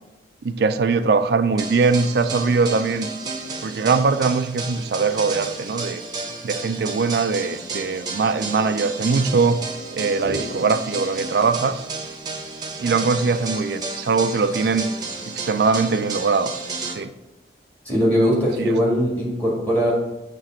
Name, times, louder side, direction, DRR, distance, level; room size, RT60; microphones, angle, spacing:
voice 1, 0.4-3.1 3.6-6.0 6.4-9.6 9.9-11.8 12.8-14.9 15.3-16.5 17.0-17.1 18.6-18.8, right 4 dB, 60° right, 11 dB, 0.4 m, -21 dB
sound 1, 1.6-16.9, right 3 dB, 20° right, 0.9 m, -32 dB
voice 2, 17.9-19.9, equal, 10° left, -5 dB, 1.8 m, -20 dB
7.2 x 3.3 x 4.9 m, 0.94 s
head